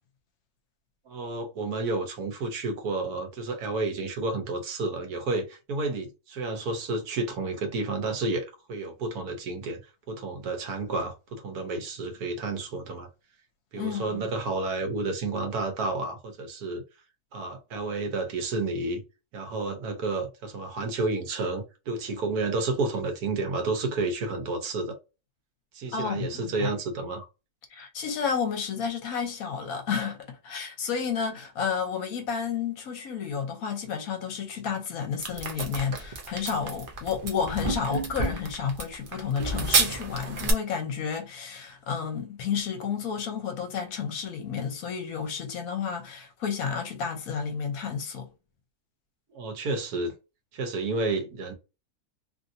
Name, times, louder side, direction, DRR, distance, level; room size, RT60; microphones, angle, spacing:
voice 1, 1.1-9.8 10.1-13.1 13.7-16.8 17.3-19.0 19.3-25.0 25.7-27.3 49.3-50.1 50.5-51.5, right 3 dB, 80° right, 1.4 m, -31 dB
voice 2, 13.7-14.3 25.9-26.7 27.7-48.3, left 6 dB, 70° left, 1.2 m, -31 dB
sound 1, 35.2-40.5, right 3 dB, 50° right, 0.6 m, -30 dB
3.2 x 2.6 x 2.6 m
omnidirectional pair, 1.6 m